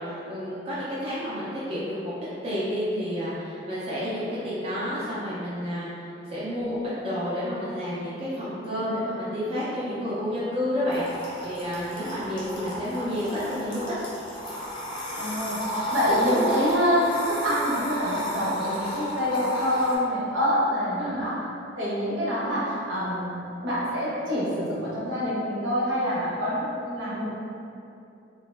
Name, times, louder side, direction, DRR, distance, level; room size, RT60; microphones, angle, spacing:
voice 1, 0.0-2.1 2.4-5.9 6.3-13.9 21.0-21.3, equal, 30° right, -10 dB, 0.4 m, -30 dB
sound 1, 10.9-20.0, equal, 25° left, 0.6 m, -33 dB
voice 2, 15.2-21.4 21.8-23.3 23.6-27.2, equal, 75° right, -8 dB, 0.9 m, -26 dB
2.9 x 2.1 x 3.2 m, 2.7 s
head